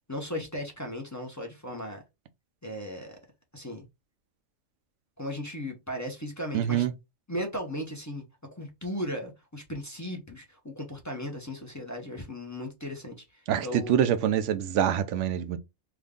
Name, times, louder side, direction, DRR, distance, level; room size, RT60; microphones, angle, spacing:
voice 1, 0.1-2.0 2.6-3.2 3.5-3.8 5.2-6.9 7.3-8.2 8.5-13.9, left 1 dB, 15° left, 0.6 m, -36 dB
voice 2, 6.5-6.9 13.5-15.6, right 9 dB, 70° right, 0.9 m, -25 dB
3.4 x 2.3 x 3.6 m
omnidirectional pair, 1.3 m